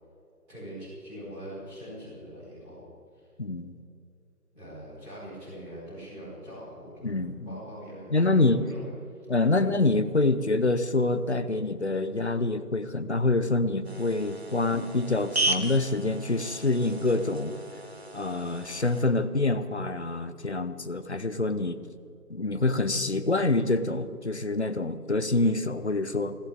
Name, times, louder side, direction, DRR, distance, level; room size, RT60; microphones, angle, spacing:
voice 1, 0.5-3.3 4.5-6.9 7.4-9.2 9.6-9.8, equal, 5° right, -15 dB, 4.9 m, -43 dB
voice 2, 3.4-3.7 7.0-7.6 8.1-8.6 9.3-17.6 18.1-21.8 22.3-26.4, left 2 dB, 45° left, 12 dB, 0.8 m, -26 dB
sound 1, 13.8-19.1, right 2 dB, 40° right, 1.2 m, -35 dB
20.0 x 17.0 x 3.6 m, 2.7 s
figure-of-eight pair, 175°, 47 cm